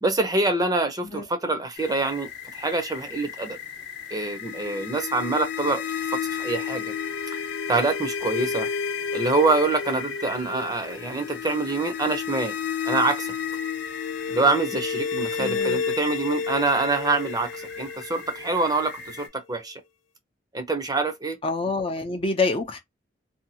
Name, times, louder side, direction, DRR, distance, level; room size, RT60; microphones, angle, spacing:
voice 1, 0.0-3.6 4.1-5.8 6.1-6.9 7.7-8.7 9.1-12.5 12.9-13.3 14.3-19.8 20.5-21.4, right 3 dB, 20° right, 0.6 m, -25 dB
sound 1, 1.7-19.3, left 5 dB, 60° left, 0.8 m, -40 dB
sound 2, 4.2-19.2, left 6 dB, 85° left, 0.4 m, -31 dB
voice 2, 15.4-15.8 21.4-22.8, left 3 dB, 30° left, 0.5 m, -26 dB
2.7 x 2.3 x 2.7 m
head